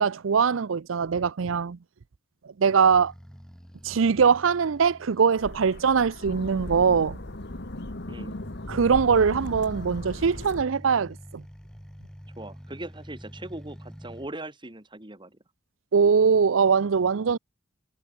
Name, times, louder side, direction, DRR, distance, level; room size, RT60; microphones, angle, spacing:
voice 1, 0.0-1.8 2.6-3.1 3.8-7.2 8.7-11.4 15.9-17.4, right 6 dB, 90° right, 0.5 m, -22 dB
sound 1, 2.8-5.5 8.1-14.3, equal, 5° left, 4.1 m, -46 dB
sound 2, 5.4-10.6, left 1 dB, 60° left, 1.8 m, -37 dB
voice 2, 8.1-8.4 12.4-15.4, right 1 dB, 25° right, 2.7 m, -40 dB
head